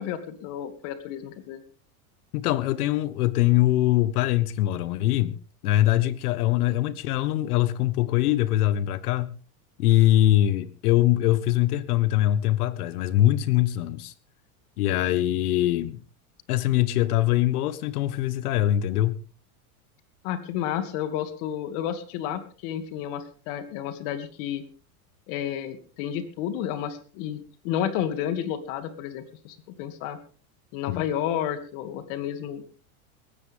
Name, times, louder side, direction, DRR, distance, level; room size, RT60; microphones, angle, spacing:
voice 1, 0.0-1.6 20.2-24.6 25.3-30.2 30.7-32.6, left 10 dB, 55° left, 2.6 m, -31 dB
voice 2, 2.3-5.4 5.6-9.4 9.8-14.1 14.8-16.0 16.5-19.2 30.9-31.0, left 14 dB, 80° left, 1.5 m, -23 dB
19.5 x 15.5 x 3.6 m
supercardioid pair, 140°, 44 cm